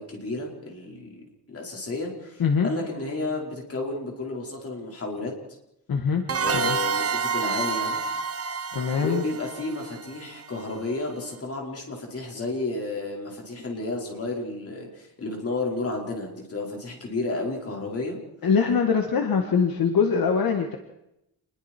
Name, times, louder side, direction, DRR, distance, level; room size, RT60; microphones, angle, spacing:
voice 1, 0.0-5.3 6.4-8.0 9.0-18.2, left 2 dB, 35° left, -1 dB, 5.0 m, -32 dB
voice 2, 5.9-6.2 6.5-6.8 8.7-9.3 18.4-20.8, left 6 dB, 65° left, 4 dB, 2.0 m, -23 dB
sound 1, 6.3-10.8, right 5 dB, 40° right, 1.0 m, -29 dB
28.5 x 21.5 x 4.6 m, 0.84 s
wide cardioid pair, 175°, 39 cm